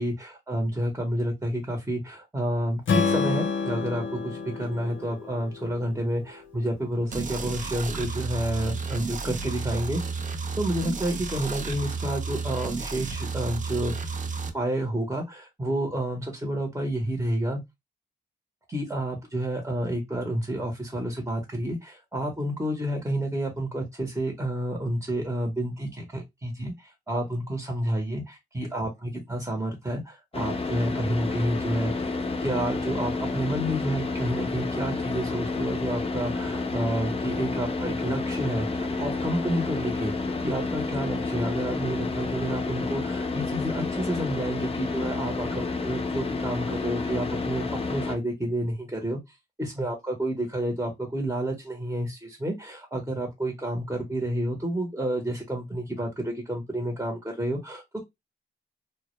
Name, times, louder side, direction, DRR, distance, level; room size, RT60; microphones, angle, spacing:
voice 1, 0.0-14.2 14.5-17.6 18.7-40.1 40.4-49.2 49.6-58.0, right 1 dB, 15° right, 0.8 m, -30 dB
Strum, 2.9-7.1, left 5 dB, 85° left, 0.6 m, -29 dB
sound 1, 7.1-14.5, right 4 dB, 45° right, 0.5 m, -32 dB
Car / Idling, 30.3-48.1, left 3 dB, 30° left, 0.5 m, -30 dB
2.1 x 2.1 x 2.9 m
cardioid pair, 70°, 19 cm